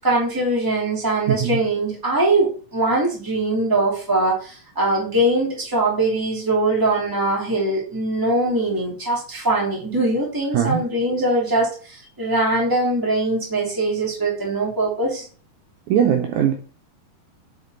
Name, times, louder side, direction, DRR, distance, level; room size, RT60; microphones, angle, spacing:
voice 1, 0.0-15.2, right 2 dB, 5° right, -3 dB, 1.7 m, -22 dB
voice 2, 15.9-16.5, right 9 dB, 85° right, 3 dB, 1.7 m, -19 dB
9.7 x 3.6 x 4.0 m, 0.40 s
omnidirectional pair, 4.4 m